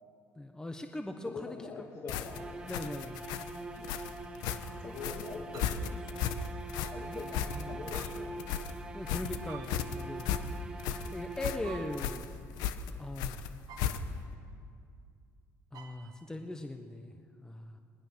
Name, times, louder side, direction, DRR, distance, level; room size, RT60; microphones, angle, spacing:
voice 1, 0.3-1.8 2.7-3.2 4.5-4.8 6.6-6.8 7.1-7.7 8.9-10.3 11.1-12.3 13.0-13.5 15.7-17.8, left 1 dB, 10° left, 5 dB, 1.3 m, -41 dB
sound 1, 0.7-0.8 2.3-3.0 4.0-4.7 5.5-6.0 7.9-8.5 9.5-10.1 11.6-12.3 13.7-14.4 15.7-16.3, right 7 dB, 65° right, 1.9 m, -53 dB
voice 2, 1.2-2.5 3.8-3.9 4.8-6.0 6.9-8.6, left 4 dB, 45° left, -1 dB, 2.6 m, -44 dB
sound 2, 2.1-14.3, left 8 dB, 85° left, 1.1 m, -36 dB
sound 3, 2.2-12.4, right 3 dB, 10° right, 2.1 m, -44 dB
20.5 x 20.0 x 6.4 m, 2.3 s
cardioid pair, 95°, 7 cm